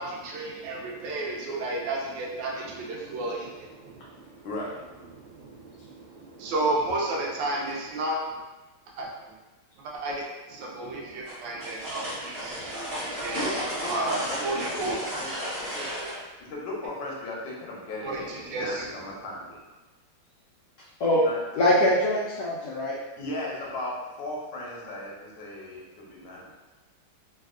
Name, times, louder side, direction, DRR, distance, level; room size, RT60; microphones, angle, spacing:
voice 1, 0.0-4.2 5.3-5.7 6.2-8.3 9.0-9.1 9.8-10.2 10.5-13.4 13.9-15.0 18.0-18.9, right 2 dB, 75° right, -2 dB, 1.2 m, -32 dB
voice 2, 4.4-4.8 10.8-10.9 13.0-15.9 16.4-19.6 21.2-21.4 21.7-21.8 23.2-26.4, left 1 dB, 75° left, -3 dB, 1.2 m, -36 dB
sound 1, 11.2-16.2, equal, 15° right, 0.9 m, -34 dB
voice 3, 21.6-23.0, left 1 dB, 90° left, -6 dB, 0.8 m, -23 dB
3.4 x 2.3 x 2.3 m, 1.1 s
omnidirectional pair, 2.3 m